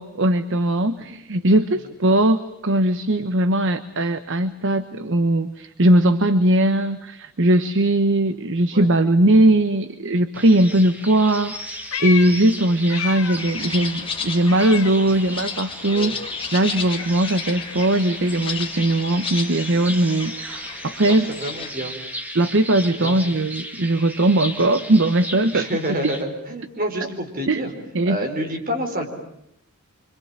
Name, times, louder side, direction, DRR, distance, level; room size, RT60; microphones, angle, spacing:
voice 1, 0.0-16.2 16.5-21.3 22.3-25.7 27.5-27.6 27.9-28.2, right 1 dB, 60° right, 11 dB, 1.0 m, -19 dB
sound 1, 10.3-26.2, equal, 10° right, 2.2 m, -36 dB
Meow, 11.4-13.6 13.9-15.6 15.9-20.0, left 7 dB, 80° left, 1.7 m, -34 dB
sound 2, 13.4-21.7, left 5 dB, 25° left, 2.3 m, -33 dB
voice 2, 21.1-21.9 23.0-23.2 25.5-27.7 28.0-29.1, right 1 dB, 40° right, 4 dB, 4.3 m, -28 dB
26.5 x 25.5 x 8.8 m, 0.76 s
head